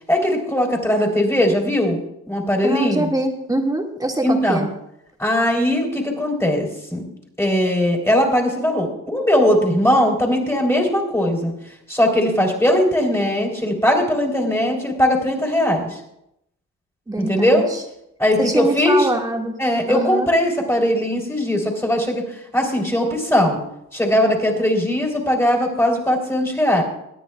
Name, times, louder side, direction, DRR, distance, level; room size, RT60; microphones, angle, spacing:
voice 1, 0.1-2.0 2.3-3.1 4.2-4.7 5.2-7.0 7.4-11.5 11.9-16.0 17.2-17.7 18.2-19.1 19.6-23.6 23.9-26.8, left 1 dB, 10° left, 1 dB, 3.6 m, -19 dB
voice 2, 2.6-4.7 17.1-17.8 18.4-19.5 19.9-20.3, right 1 dB, 10° right, 2 dB, 1.9 m, -23 dB
23.5 x 9.4 x 2.3 m, 0.81 s
cardioid pair, 90°, 30 cm